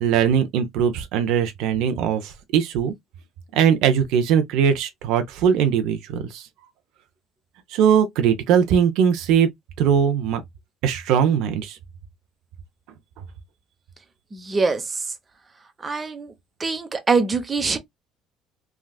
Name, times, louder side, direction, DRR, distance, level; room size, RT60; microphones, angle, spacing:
voice 1, 0.0-2.9 3.5-6.5 7.7-9.5 9.8-10.4 10.8-11.8, right 8 dB, 75° right, 0.6 m, -20 dB
voice 2, 14.3-15.1 15.8-16.3 16.6-17.8, right 4 dB, 25° right, 0.8 m, -23 dB
3.5 x 2.3 x 2.2 m
supercardioid pair, 90°, 0 cm